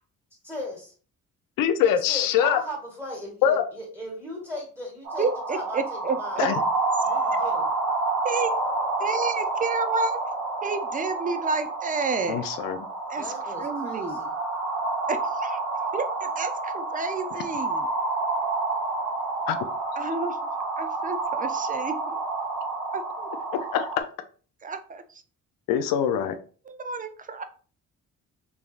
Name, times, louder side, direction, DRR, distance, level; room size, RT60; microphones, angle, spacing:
voice 1, 0.4-0.9 1.8-6.5 7.0-7.6 13.1-14.3, equal, 5° right, 1.3 m, -37 dB
voice 2, 1.6-2.6 3.4-3.7 6.4-6.6 12.3-12.9 19.5-19.6 23.5-24.0 25.7-26.4, left 9 dB, 75° left, 0.5 m, -23 dB
sound 1, 5.1-24.0, right 3 dB, 85° right, 1.0 m, -29 dB
voice 3, 5.2-6.5 7.0-7.4 8.2-8.5 9.0-10.2 10.6-12.4 13.1-14.2 15.1-15.6 15.9-17.9 20.0-20.4 20.8-22.2 22.9-23.3 24.6-25.0 26.7-27.4, right 4 dB, 25° right, 0.4 m, -30 dB
3.3 x 2.2 x 2.3 m
cardioid pair, 75°, 34 cm